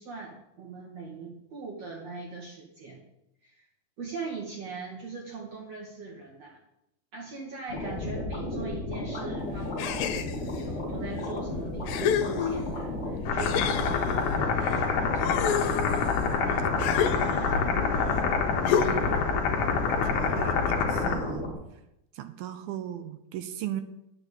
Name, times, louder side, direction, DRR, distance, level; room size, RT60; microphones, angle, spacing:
voice 1, 0.0-3.0 3.4-3.7 4.0-6.6 7.1-16.2 17.1-17.3, right 3 dB, 50° right, -3 dB, 2.4 m, -41 dB
sound 1, 7.7-21.5, left 2 dB, 25° left, 1.6 m, -34 dB
sound 2, 9.8-10.6 11.3-11.4 11.9-12.9 13.4-14.8 15.1-17.7 18.7-19.2, left 8 dB, 85° left, 2.9 m, -30 dB
sound 3, 13.3-21.1, left 5 dB, 60° left, 2.5 m, -27 dB
voice 2, 18.8-19.2 19.8-21.5 22.1-23.8, right 11 dB, 80° right, 9 dB, 2.1 m, -37 dB
9.9 x 6.9 x 8.3 m, 0.84 s
omnidirectional pair, 4.9 m